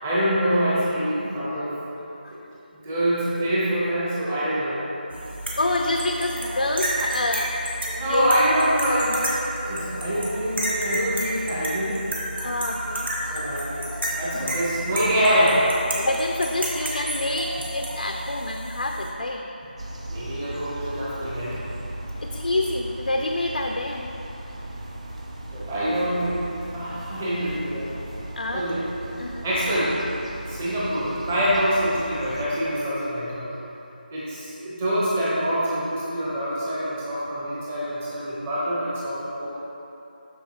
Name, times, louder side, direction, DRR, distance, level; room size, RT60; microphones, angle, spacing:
voice 1, 0.0-1.8 2.3-2.4 2.7-5.0 7.9-12.0 13.2-13.8 14.2-15.6 20.1-21.6 25.5-26.4 26.7-27.9 28.5-28.8 29.4-29.9 30.5-33.5 34.1-39.5, equal, 10° right, -9 dB, 0.8 m, -25 dB
sound 1, 5.1-19.1, right 1 dB, 85° right, 1.4 m, -31 dB
voice 2, 5.6-7.6 8.1-8.3 12.4-13.4 13.9-14.0 14.3-14.6 16.0-19.5 22.2-24.1 26.9-27.0 28.4-28.7 29.2-29.5, left 2 dB, 65° left, 2 dB, 0.5 m, -27 dB
sound 2, 19.8-32.4, right 1 dB, 40° right, 0.6 m, -37 dB
12.0 x 4.3 x 2.9 m, 2.9 s
figure-of-eight pair, 175°, 5 cm